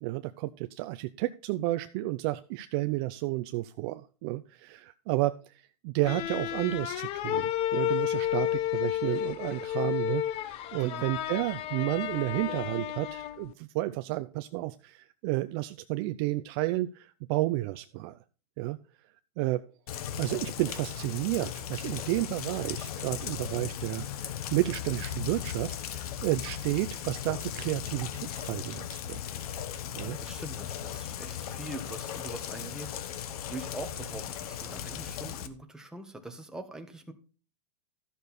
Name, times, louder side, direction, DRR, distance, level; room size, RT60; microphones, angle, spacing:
voice 1, 0.0-18.2 18.6-18.8 19.4-19.6 20.2-29.2 29.9-30.2, right 18 dB, 40° right, 11 dB, 0.5 m, -31 dB
sound 1, 6.0-13.5, left 12 dB, 30° left, 0.6 m, -31 dB
Rain, 19.9-35.5, left 9 dB, 65° left, 1.2 m, -37 dB
voice 2, 30.2-33.0 33.5-37.1, right 2 dB, 5° right, 4 dB, 1.4 m, -43 dB
13.0 x 6.7 x 4.2 m, 0.36 s
hypercardioid pair, 140°, 21 cm